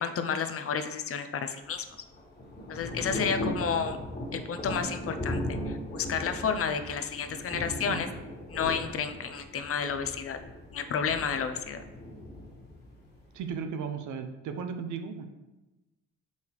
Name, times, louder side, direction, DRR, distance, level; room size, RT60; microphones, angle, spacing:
voice 1, 0.0-1.9 2.7-4.0 4.3-5.4 5.7-8.1 8.5-10.4 10.7-11.8, left 6 dB, 50° left, 8 dB, 0.6 m, -31 dB
Thunder / Rain, 1.6-13.6, left 1 dB, 35° left, 1.8 m, -38 dB
voice 2, 13.3-15.3, right 6 dB, 75° right, 7 dB, 0.8 m, -35 dB
6.5 x 5.4 x 3.2 m, 1.1 s
cardioid pair, 90°, 30 cm